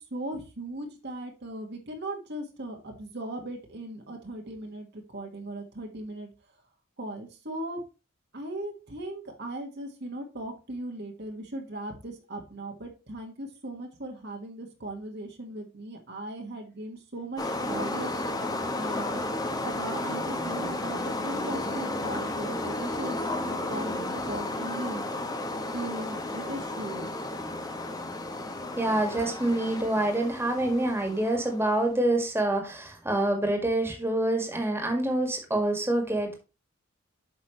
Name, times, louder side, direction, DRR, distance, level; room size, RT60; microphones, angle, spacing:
voice 1, 0.0-6.3 7.0-7.8 8.3-18.2 18.7-25.1 25.7-27.1, right 1 dB, 50° right, 2 dB, 1.7 m, -38 dB
sound 1, 17.4-31.8, left 2 dB, 20° left, 1.0 m, -33 dB
voice 2, 28.8-36.3, right 1 dB, 10° right, 3 dB, 1.9 m, -26 dB
8.2 x 6.2 x 3.1 m, 0.30 s
head